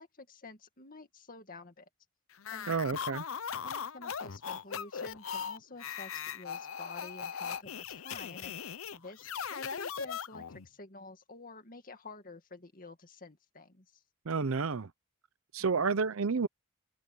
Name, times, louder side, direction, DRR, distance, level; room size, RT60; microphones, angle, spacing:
voice 1, 0.0-1.9 2.5-2.8 3.6-14.0 15.6-16.0, left 3 dB, 40° left, 2.2 m, -50 dB
sound 1, 2.4-10.7, left 7 dB, 70° left, 0.7 m, -39 dB
voice 2, 2.7-3.2 14.3-14.9 15.5-16.5, right 5 dB, 75° right, 0.7 m, -30 dB
head